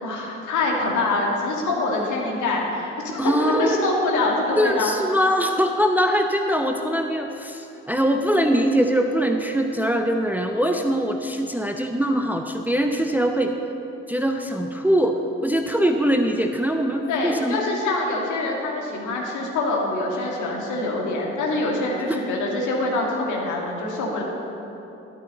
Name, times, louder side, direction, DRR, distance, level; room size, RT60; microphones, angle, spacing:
voice 1, 0.0-4.9 17.1-24.2, left 2 dB, 60° left, -1 dB, 2.1 m, -25 dB
voice 2, 3.2-3.7 4.6-13.5 14.1-17.6 22.1-22.2, equal, 5° right, 4 dB, 0.7 m, -22 dB
12.5 x 11.5 x 4.0 m, 2.9 s
figure-of-eight pair, 40°, 35 cm